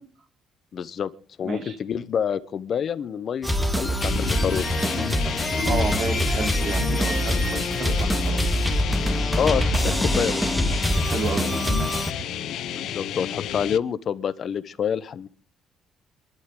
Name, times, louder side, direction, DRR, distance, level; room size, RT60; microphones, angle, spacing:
voice 1, 0.7-1.1 1.4-4.7 9.4-10.5 12.7-15.3, left 8 dB, 45° left, 15 dB, 1.0 m, -27 dB
voice 2, 1.4-1.8 5.4-8.4 11.0-11.5, right 3 dB, 50° right, 4 dB, 3.6 m, -31 dB
sound 1, 3.4-12.1, equal, ahead, 1.9 m, -24 dB
sound 2, 4.0-13.8, left 12 dB, 70° left, 0.7 m, -31 dB
sound 3, 4.1-13.7, right 2 dB, 80° right, 4.9 m, -44 dB
25.5 x 12.0 x 3.9 m, 0.42 s
cardioid pair, 135°, 0 cm